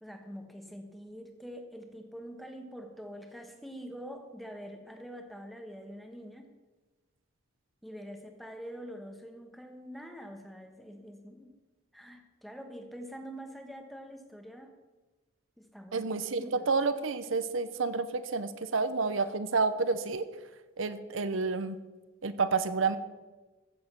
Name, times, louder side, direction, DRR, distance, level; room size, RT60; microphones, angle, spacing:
voice 1, 0.0-6.5 7.8-11.6 11.9-14.7 15.6-16.1 16.4-16.7, equal, ahead, 4 dB, 1.2 m, -45 dB
voice 2, 15.9-20.3 20.8-21.8 22.2-23.0, right 4 dB, 85° right, 11 dB, 0.8 m, -29 dB
14.5 x 7.4 x 6.0 m, 1.2 s
head